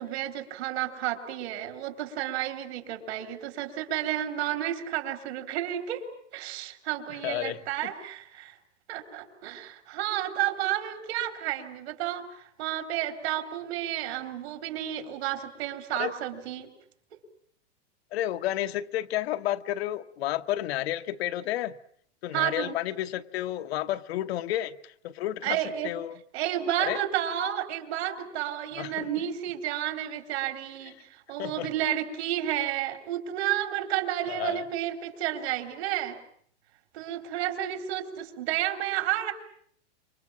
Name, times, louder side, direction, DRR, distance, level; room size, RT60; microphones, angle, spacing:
voice 1, 0.0-6.0 6.3-8.5 8.9-16.7 17.1-17.2 22.3-22.8 25.4-25.9 26.3-36.2 36.9-39.3, right 12 dB, 60° right, 7 dB, 3.9 m, -31 dB
voice 2, 7.1-7.6 15.9-16.1 18.1-21.7 22.2-26.2 26.8-27.0 28.8-29.1 31.4-31.7 34.3-34.7, left 13 dB, 60° left, 8 dB, 1.1 m, -31 dB
27.5 x 24.5 x 7.4 m, 0.64 s
hypercardioid pair, 145°, 35 cm